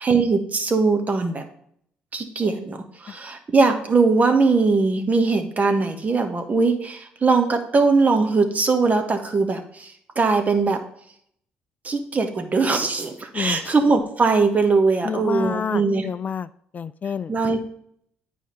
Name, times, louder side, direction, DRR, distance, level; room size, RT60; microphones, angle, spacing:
voice 1, 0.0-1.4 2.1-2.8 3.0-10.8 11.8-16.0 17.3-17.6, right 4 dB, 35° right, 6 dB, 1.5 m, -20 dB
voice 2, 13.3-13.7 15.0-17.3, left 7 dB, 40° left, 15 dB, 0.3 m, -29 dB
9.2 x 5.0 x 4.1 m, 0.67 s
hypercardioid pair, 55°, 4 cm